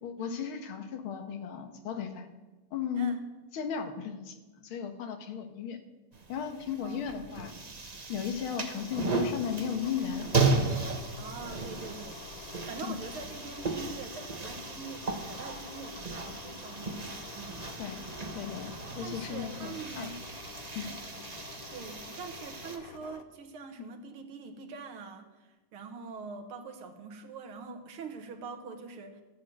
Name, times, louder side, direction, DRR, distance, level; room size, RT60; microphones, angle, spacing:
voice 1, 0.0-2.3 2.7-3.1 3.5-5.8 6.3-7.5 8.1-10.3 12.9-13.0 17.8-18.0 18.3-20.1 20.8-20.9, left 7 dB, 80° left, 7 dB, 2.0 m, -35 dB
sound 1, 6.1-22.8, right 4 dB, 30° right, 0.7 m, -35 dB
sound 2, 8.8-23.2, left 7 dB, 60° left, 1.0 m, -48 dB
voice 2, 11.1-12.2 12.6-17.7 19.0-20.2 21.7-29.2, right 4 dB, 85° right, 5 dB, 2.2 m, -44 dB
13.5 x 7.4 x 7.7 m, 1.2 s
omnidirectional pair, 2.3 m